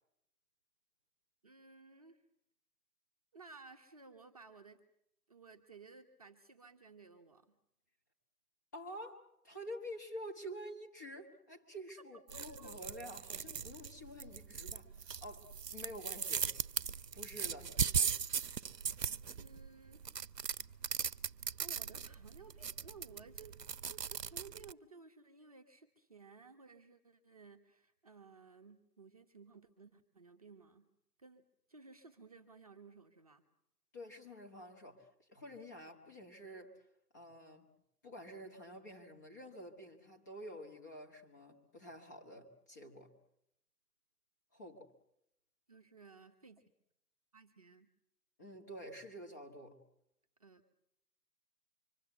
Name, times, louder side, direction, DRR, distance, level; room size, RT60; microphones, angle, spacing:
voice 1, 1.4-2.2 3.3-4.8 5.3-7.6 12.3-12.7 17.8-18.2 19.4-20.1 21.6-23.6 23.8-30.9 31.2-31.4 31.7-33.4 45.7-46.7 47.3-47.9 50.4-50.6, right 4 dB, 25° right, 4 dB, 1.2 m, -57 dB
voice 2, 8.7-16.5 17.1-17.8 33.9-36.8 37.1-37.7 38.0-43.1 44.5-44.9 48.4-49.8, equal, 10° left, 2 dB, 1.4 m, -49 dB
sound 1, 12.3-24.7, right 7 dB, 80° right, 1.1 m, -39 dB
25.5 x 24.5 x 7.9 m, 0.77 s
hypercardioid pair, 170°, 48 cm